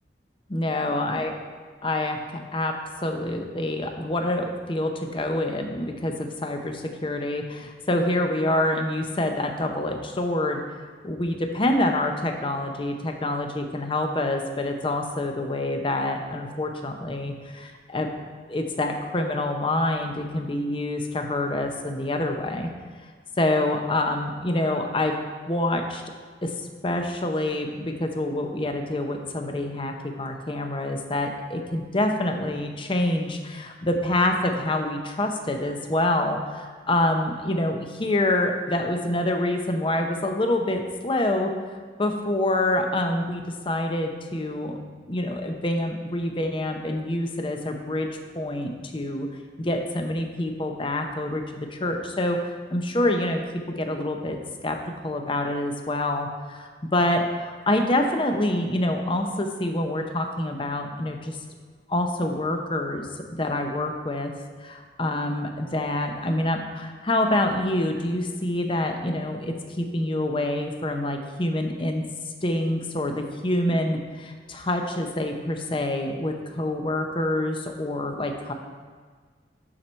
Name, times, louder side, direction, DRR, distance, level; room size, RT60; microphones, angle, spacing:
voice 1, 0.5-1.3 1.8-10.6 11.0-18.1 18.5-22.7 23.4-25.2 25.5-26.0 26.4-26.5 26.8-41.5 42.0-44.8 45.1-48.1 48.3-49.3 49.6-53.4 53.7-54.4 54.6-61.4 61.9-63.1 63.4-64.3 64.6-72.0 72.4-78.5, left 1 dB, 30° left, 4 dB, 0.7 m, -26 dB
11.5 x 4.4 x 4.4 m, 1.5 s
head